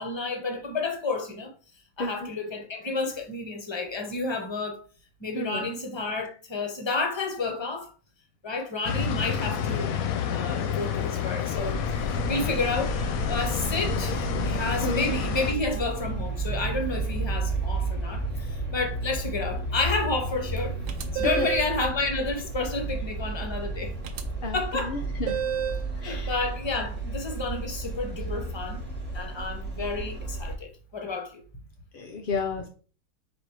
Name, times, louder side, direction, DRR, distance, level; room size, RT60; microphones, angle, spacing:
voice 1, 0.0-1.5 2.0-4.8 5.2-7.9 8.4-9.9 10.3-11.8 12.1-13.0 13.3-20.7 21.1-23.9 24.5-24.9 26.0-28.8 29.1-31.4, left 3 dB, 25° left, 0.6 m, -30 dB
voice 2, 2.0-2.3 5.3-5.7 14.8-15.1 21.4-21.5 24.4-25.4 26.0-26.4 31.9-32.7, left 3 dB, 85° left, 0.4 m, -32 dB
sound 1, 8.8-15.5, left 8 dB, 70° left, 0.9 m, -29 dB
Traffic noise roadway noise, 11.6-30.5, right 2 dB, 5° right, 1.1 m, -32 dB
sound 2, 20.9-21.8 24.0-24.2 25.3-25.9, right 8 dB, 70° right, 1.0 m, -30 dB
4.1 x 2.6 x 4.6 m
omnidirectional pair, 1.7 m